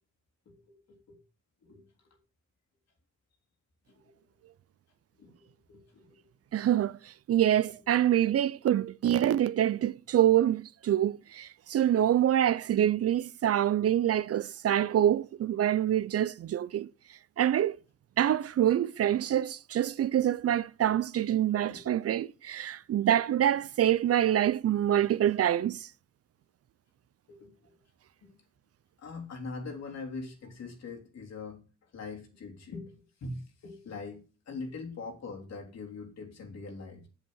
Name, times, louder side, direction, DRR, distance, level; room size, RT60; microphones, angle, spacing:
voice 1, 0.4-1.2 1.6-2.2 3.9-4.3 5.2-6.2 6.7-6.9 7.8-7.9 13.0-13.1 15.9-16.0 21.7-21.9 27.3-27.8 28.2-28.4 29.0-32.9 33.2-37.1, left 3 dB, 60° left, 3.4 m, -43 dB
voice 2, 6.5-7.0 7.3-16.9 17.4-17.8 18.2-25.9, right 11 dB, 50° right, 0.6 m, -26 dB
8.1 x 7.6 x 6.3 m
cardioid pair, 90°, 30 cm